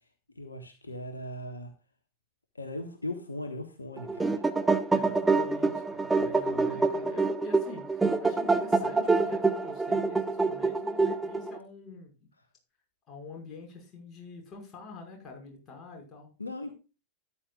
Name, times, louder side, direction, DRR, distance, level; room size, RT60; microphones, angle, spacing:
voice 1, 0.4-1.7 2.5-4.4 6.2-6.9 16.4-16.8, left 1 dB, 80° left, 6 dB, 1.5 m, -39 dB
sound 1, 4.0-11.6, right 3 dB, 10° right, 1.0 m, -26 dB
voice 2, 4.9-12.2 13.1-16.3, left 3 dB, 30° left, 0 dB, 5.6 m, -46 dB
13.5 x 10.0 x 2.4 m, 0.30 s
figure-of-eight pair, 90°, 0 cm